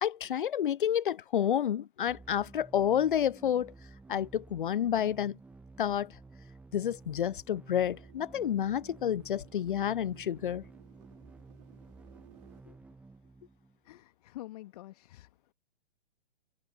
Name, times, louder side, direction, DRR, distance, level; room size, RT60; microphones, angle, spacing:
voice 1, 0.0-3.7 4.1-5.4 5.8-6.1 6.7-10.6, left 9 dB, 55° left, 0.5 m, -29 dB
sound 1, 2.1-14.0, right 3 dB, 5° right, 1.1 m, -53 dB
sound 2, 7.6-12.6, right 15 dB, 40° right, 3.0 m, -60 dB
voice 2, 13.8-15.5, left 16 dB, 40° left, 1.8 m, -47 dB
figure-of-eight pair, 120°, 31 cm